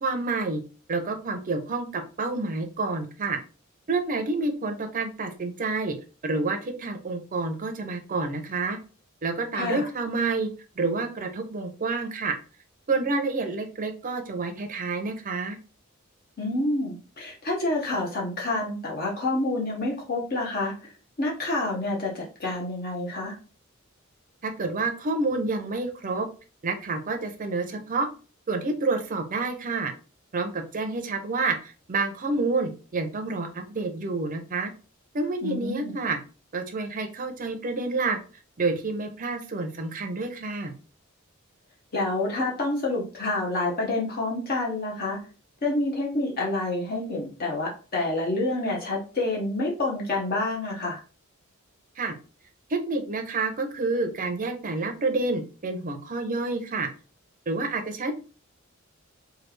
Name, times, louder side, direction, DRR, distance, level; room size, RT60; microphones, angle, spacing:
voice 1, 0.0-0.6 0.9-3.4 3.9-6.0 6.2-8.8 9.2-10.5 10.8-12.3 12.9-15.6 24.4-26.3 26.6-28.1 28.5-29.9 30.3-34.7 35.1-36.2 36.5-38.2 38.6-40.7 52.0-52.2 52.7-56.9 57.5-58.1, right 3 dB, 40° right, 6 dB, 0.6 m, -28 dB
voice 2, 9.5-9.9 16.4-20.9 21.2-23.3 35.4-35.9 41.9-45.2 45.6-51.0, left 2 dB, 45° left, -2 dB, 0.8 m, -28 dB
3.3 x 2.3 x 3.1 m, 0.35 s
head